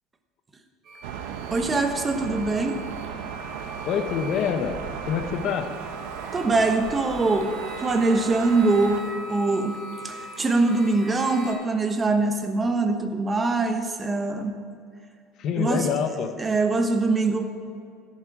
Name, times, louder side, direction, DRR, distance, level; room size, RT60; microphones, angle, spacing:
sound 1, 0.8-11.5, right 1 dB, 40° right, 3.5 m, -42 dB
Thunder, 1.0-9.0, right 8 dB, 90° right, 1.1 m, -36 dB
voice 1, 1.5-2.8 6.3-9.8 10.0-14.6 15.5-15.9 16.4-17.5, right 3 dB, 15° right, 6 dB, 1.1 m, -23 dB
voice 2, 3.9-4.8 5.1-5.8 15.4-16.3, left 7 dB, 45° left, 7 dB, 1.1 m, -26 dB
13.5 x 11.0 x 4.8 m, 2.4 s
cardioid pair, 155°, 0 cm